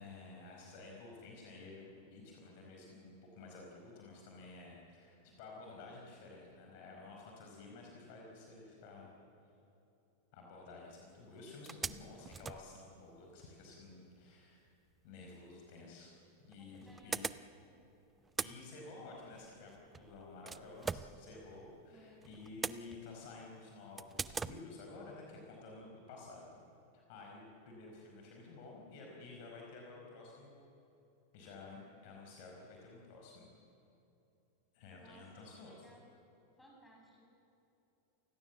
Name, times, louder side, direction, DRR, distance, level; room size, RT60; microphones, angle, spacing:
voice 1, 0.0-9.1 10.3-14.6 15.0-16.1 16.4-17.2 18.4-19.7 20.0-26.5 26.9-30.6 31.3-33.5 34.7-35.7, left 3 dB, 45° left, 0 dB, 5.0 m, -52 dB
sound 1, 10.9-11.0 11.3-11.4 11.7-13.5 15.5-15.6 16.5-17.8 18.1-21.9 22.2-23.4 24.0-24.6, right 5 dB, 15° right, 0.6 m, -43 dB
voice 2, 16.6-17.7 21.9-22.2 35.0-36.1 36.6-37.3, equal, 5° left, -2 dB, 7.9 m, -62 dB
29.0 x 17.0 x 7.4 m, 2.9 s
figure-of-eight pair, 90°, 0 cm